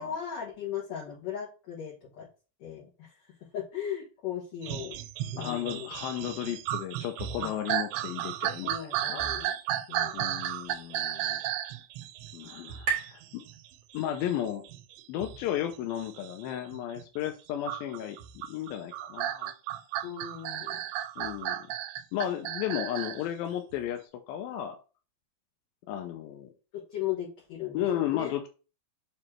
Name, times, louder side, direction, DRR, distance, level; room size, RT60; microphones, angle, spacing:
voice 1, 0.0-2.3 2.6-5.0 5.3-5.9 7.4-7.6 8.6-9.5 9.9-10.2 20.0-20.8 26.7-28.3, left 9 dB, 55° left, -5 dB, 2.3 m, -37 dB
sound 1, 4.6-17.0 17.7-23.2 23.7-23.8, right 12 dB, 85° right, 2.5 m, -34 dB
voice 2, 5.4-9.2 10.1-11.4 12.3-13.4 13.9-14.7 15.1-18.2 18.5-19.5 21.2-21.7 22.1-24.8 25.9-26.5 27.7-28.5, left 11 dB, 80° left, 5 dB, 2.3 m, -34 dB
sound 2, 10.5-14.3, right 6 dB, 50° right, 1.3 m, -39 dB
6.9 x 3.1 x 4.3 m, 0.35 s
omnidirectional pair, 4.5 m